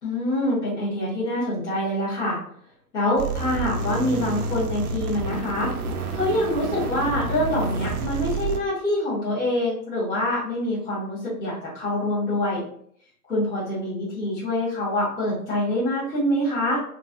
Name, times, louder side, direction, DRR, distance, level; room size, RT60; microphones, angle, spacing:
voice 1, 0.0-2.4 2.9-5.7 6.1-12.6 13.3-16.8, left 1 dB, 10° left, -10 dB, 0.6 m, -25 dB
sound 1, 3.2-8.6, right 3 dB, 75° right, 0.6 m, -29 dB
3.3 x 2.3 x 2.4 m, 0.65 s
hypercardioid pair, 125°, 46 cm